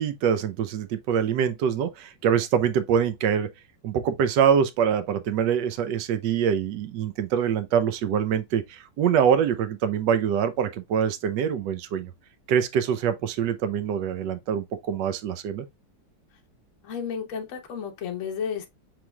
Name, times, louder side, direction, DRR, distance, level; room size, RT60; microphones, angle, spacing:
voice 1, 0.0-3.5 3.8-12.1 12.5-15.7, right 8 dB, 70° right, 1.2 m, -24 dB
voice 2, 16.8-18.7, left 7 dB, 60° left, 0.8 m, -32 dB
6.1 x 3.4 x 2.2 m
omnidirectional pair, 2.2 m